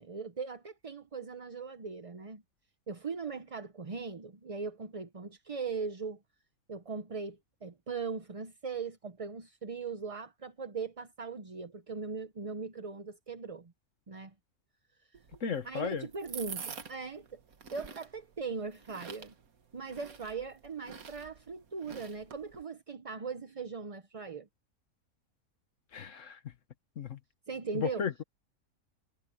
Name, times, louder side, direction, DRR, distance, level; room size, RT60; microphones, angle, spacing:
voice 1, 0.0-2.4 2.9-6.2 6.7-13.7 14.1-14.3 15.6-17.4 17.7-19.3 19.7-24.5 27.5-28.1, right 5 dB, 30° right, 0.7 m, -39 dB
sound 1, 15.1-22.6, right 6 dB, 75° right, 1.9 m, -48 dB
voice 2, 15.4-16.1 25.9-26.5 27.0-27.2 27.7-28.2, left 6 dB, 60° left, 1.5 m, -35 dB
omnidirectional pair, 1.5 m